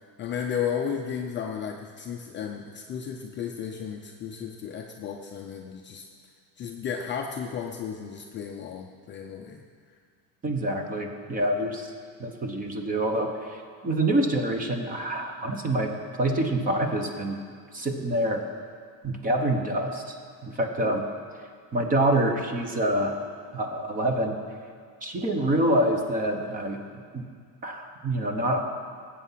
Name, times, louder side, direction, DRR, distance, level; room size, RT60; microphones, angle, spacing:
voice 1, 0.2-6.1 6.6-9.6 11.4-11.5 20.8-21.0, left 7 dB, 25° left, 1 dB, 0.5 m, -34 dB
voice 2, 10.4-11.9 12.2-17.4 17.7-18.4 19.0-20.1 20.4-21.0 21.7-23.2 23.5-24.4 25.0-26.8 27.1-27.2 27.6-28.6, right 1 dB, 20° right, 4 dB, 1.0 m, -26 dB
19.0 x 8.4 x 5.7 m, 2.1 s
cardioid pair, 175°, 45 cm